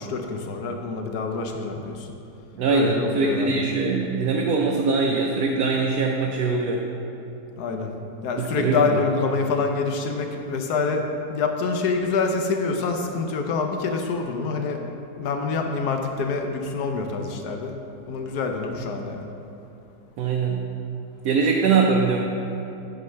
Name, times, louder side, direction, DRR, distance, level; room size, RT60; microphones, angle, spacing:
voice 1, 0.0-2.1 2.7-3.6 7.6-7.9 8.2-11.0 11.3-14.8 15.2-17.8 18.1-19.3, left 4 dB, 70° left, 4 dB, 1.2 m, -26 dB
voice 2, 2.6-6.8 8.4-9.0 20.2-20.6 21.2-22.3, right 4 dB, 65° right, -1 dB, 1.1 m, -22 dB
8.2 x 5.0 x 5.6 m, 2.9 s
omnidirectional pair, 1.8 m